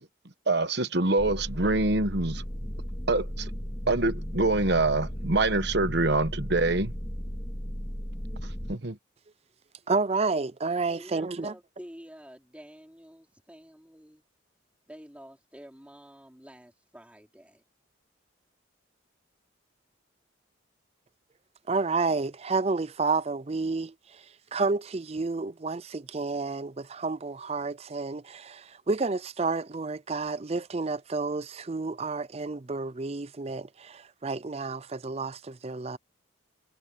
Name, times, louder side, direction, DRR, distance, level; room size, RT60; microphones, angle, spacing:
voice 1, 0.5-2.4 3.1-3.5 3.9-6.9 8.7-9.0, right 2 dB, 55° right, 1.2 m, -25 dB
sound 1, 1.2-8.7, equal, 20° left, 2.9 m, -35 dB
voice 2, 9.9-11.5 21.7-24.2 24.5-36.0, right 3 dB, 30° right, 0.5 m, -30 dB
voice 3, 10.9-14.2 14.9-17.6, equal, 5° right, 3.2 m, -49 dB
head